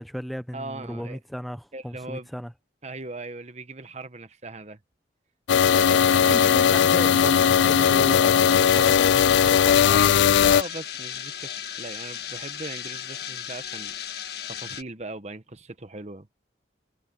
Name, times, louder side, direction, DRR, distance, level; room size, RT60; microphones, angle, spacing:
voice 1, 0.0-2.5 6.3-10.3, equal, ahead, 0.6 m, -35 dB
voice 2, 0.5-1.2 1.7-2.3 2.8-4.8 5.7-6.9 10.4-16.3, right 2 dB, 35° right, 1.2 m, -39 dB
sound 1, 5.5-10.6, left 8 dB, 80° left, 0.3 m, -18 dB
sound 2, 8.3-14.8, left 9 dB, 60° left, 1.6 m, -36 dB
head